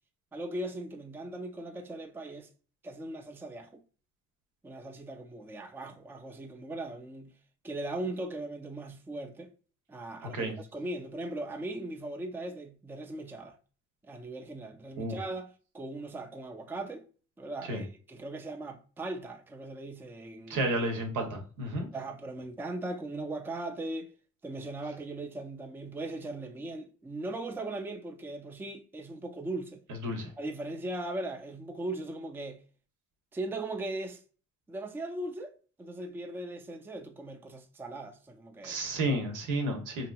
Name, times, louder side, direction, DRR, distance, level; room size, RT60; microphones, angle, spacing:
voice 1, 0.3-2.5 2.8-3.8 4.6-7.3 7.6-9.5 9.9-13.6 14.1-17.1 17.4-20.7 21.9-24.1 24.4-29.8 30.4-32.6 33.3-34.2 34.7-38.8, right 2 dB, 10° right, 0.3 m, -39 dB
voice 2, 10.2-10.6 15.0-15.2 17.7-17.8 20.5-21.9 30.0-30.3 38.6-40.1, right 1 dB, 90° right, 0.9 m, -31 dB
2.8 x 2.7 x 2.3 m
cardioid pair, 90°, 30 cm